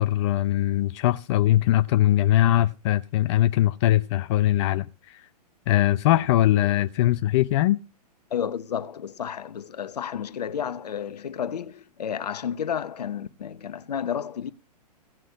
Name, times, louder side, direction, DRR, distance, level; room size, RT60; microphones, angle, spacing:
voice 1, 0.0-5.2 5.7-7.8, left 14 dB, 45° left, 0.6 m, -21 dB
voice 2, 8.3-14.5, left 8 dB, 70° left, 0.8 m, -31 dB
16.5 x 6.3 x 5.8 m
figure-of-eight pair, 115°, 21 cm